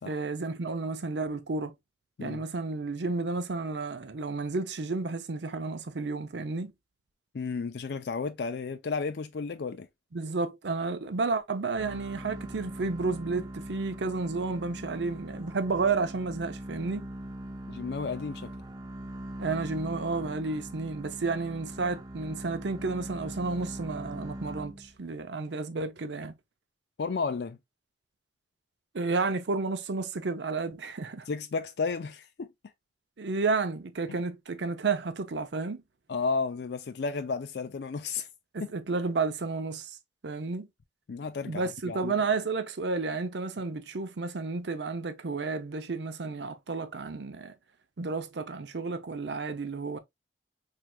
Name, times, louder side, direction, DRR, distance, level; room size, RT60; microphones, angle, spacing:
voice 1, 0.1-1.7 2.2-6.7 10.1-17.1 19.4-26.3 28.9-31.3 33.2-35.8 38.5-40.0 40.2-40.7 41.4-47.5 48.0-50.0, right 3 dB, 75° right, 0.7 m, -31 dB
voice 2, 7.3-9.9 17.7-18.5 27.0-27.6 31.3-32.5 36.1-38.3 41.1-42.1, left 4 dB, 65° left, 0.4 m, -33 dB
sound 1, 11.7-25.1, right 1 dB, 20° right, 0.5 m, -41 dB
4.5 x 3.3 x 2.3 m
head